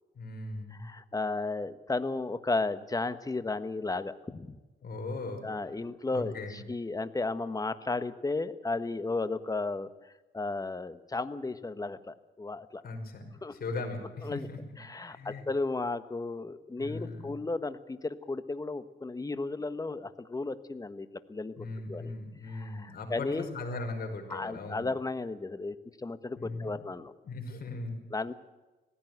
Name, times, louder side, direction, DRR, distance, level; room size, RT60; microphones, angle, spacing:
voice 1, 0.1-0.9 4.8-5.5 6.1-6.6 12.8-14.6 15.0-15.4 16.8-17.4 21.6-24.9 26.4-26.8 27.2-28.0, left 3 dB, 50° left, 4 dB, 5.4 m, -38 dB
voice 2, 0.8-4.6 5.4-9.9 10.3-12.8 13.4-13.5 14.2-14.5 14.8-21.5 21.9-22.1 22.5-23.5 24.3-27.1 28.1-28.3, left 3 dB, 20° left, 11 dB, 1.3 m, -34 dB
18.0 x 15.5 x 9.3 m, 1.1 s
cardioid pair, 90°, 20 cm